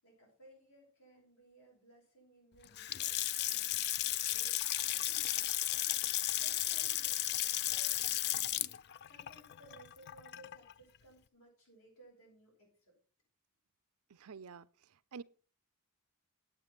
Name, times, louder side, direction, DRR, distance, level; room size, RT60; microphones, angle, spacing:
voice 1, 0.0-12.9, right 1 dB, 75° left, 7.2 m, -62 dB
Water tap faucet / Sink (filling or washing) / Splash splatter, 2.6-10.7, left 13 dB, 50° left, 0.4 m, -34 dB
voice 2, 14.1-14.7 15.1-15.2, right 5 dB, 80° right, 0.6 m, -47 dB
8.9 x 8.6 x 5.9 m
head